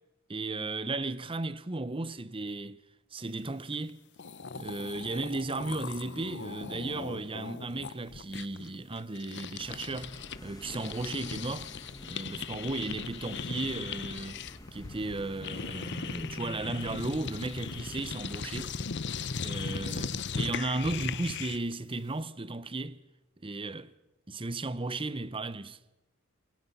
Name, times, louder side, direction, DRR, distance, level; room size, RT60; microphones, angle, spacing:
voice 1, 0.3-2.8 3.1-4.0 4.6-11.7 12.0-14.4 14.7-18.8 19.4-23.0 23.4-23.9 24.3-25.8, right 2 dB, 25° right, 0.7 m, -35 dB
sound 1, 3.9-4.0 4.2-10.4 10.6-21.7, left 5 dB, 50° left, 0.8 m, -38 dB
sound 2, 9.6-18.7, left 1 dB, 15° left, 1.6 m, -48 dB
28.0 x 21.0 x 5.5 m
head